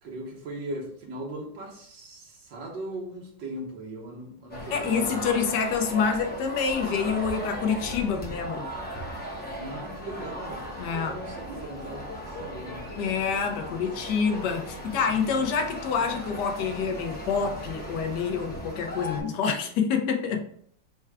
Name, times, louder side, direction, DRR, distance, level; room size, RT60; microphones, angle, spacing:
voice 1, 0.0-5.6 7.9-8.4 9.5-12.8 13.6-13.7 14.8-15.1, right 1 dB, 85° right, -1 dB, 1.8 m, -39 dB
sound 1, 4.5-19.2, equal, 15° left, 0.3 m, -37 dB
voice 2, 4.7-8.7 10.8-11.1 13.0-20.4, left 6 dB, 75° left, 4 dB, 1.2 m, -27 dB
4.4 x 2.2 x 4.7 m, 0.64 s
omnidirectional pair, 1.9 m